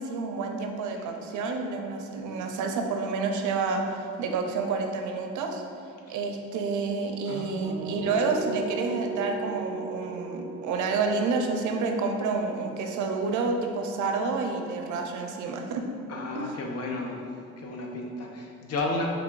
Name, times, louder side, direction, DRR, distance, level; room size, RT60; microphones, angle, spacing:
voice 1, 0.0-5.6 6.1-15.8 16.3-16.5, right 4 dB, 75° right, 4 dB, 0.5 m, -29 dB
voice 2, 7.3-8.0 16.1-17.2 17.6-19.1, left 2 dB, 55° left, 1 dB, 0.5 m, -33 dB
sound 1, 7.6-13.5, right 5 dB, 15° right, 0.4 m, -37 dB
3.6 x 3.4 x 2.4 m, 2.3 s
cardioid pair, 90°, 30 cm